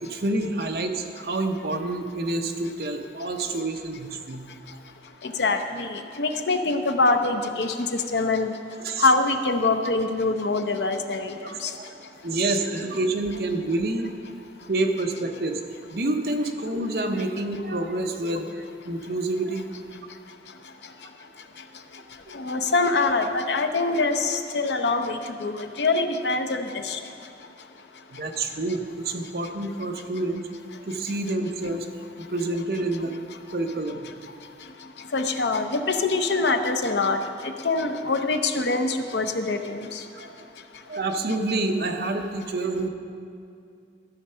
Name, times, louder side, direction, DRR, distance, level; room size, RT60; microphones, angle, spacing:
voice 1, 0.0-4.5 8.8-9.1 11.4-12.0 12.2-14.1 14.7-15.6 15.9-19.7 22.3-22.4 24.0-24.1 28.1-30.4 30.9-31.9 32.2-33.1 33.5-34.1 40.1-40.3 40.9-42.9, right 2 dB, 60° right, 4 dB, 0.8 m, -28 dB
voice 2, 5.2-8.5 9.0-11.4 11.6-11.7 22.3-27.0 35.1-37.2 37.4-40.0, left 3 dB, 80° left, 6 dB, 0.7 m, -24 dB
13.0 x 6.6 x 5.6 m, 2.4 s
head